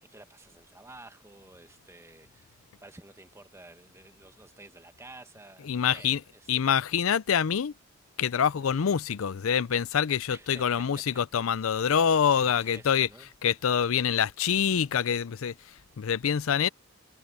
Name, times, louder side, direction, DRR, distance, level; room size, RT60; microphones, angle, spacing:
voice 1, 0.1-6.5 8.5-8.8 10.3-11.0 11.7-12.0 12.3-13.3, right 2 dB, 15° right, 1.2 m, -51 dB
voice 2, 5.6-6.2 6.5-7.7 8.2-13.1 13.4-16.7, left 7 dB, 85° left, 0.5 m, -26 dB
head